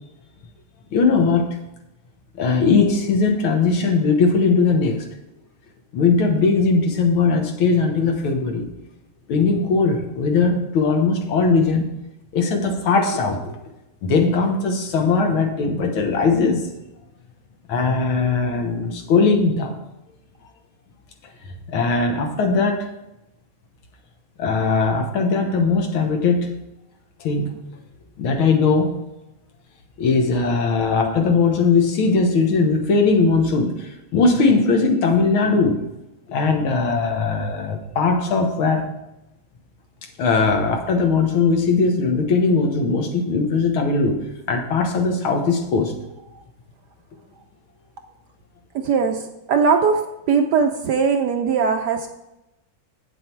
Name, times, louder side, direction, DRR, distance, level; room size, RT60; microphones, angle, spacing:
voice 1, 0.9-1.6 2.4-5.1 5.9-8.7 9.3-11.9 12.3-13.6 14.0-16.7 17.7-19.8 21.7-22.9 24.4-26.5 27.2-27.5 28.2-29.0 30.0-35.9 36.3-38.9 40.2-45.9, left 4 dB, 80° left, 4 dB, 2.0 m, -19 dB
voice 2, 48.7-50.0 50.3-52.1, right 5 dB, 70° right, 6 dB, 1.0 m, -20 dB
8.4 x 7.5 x 4.5 m, 0.92 s
omnidirectional pair, 2.2 m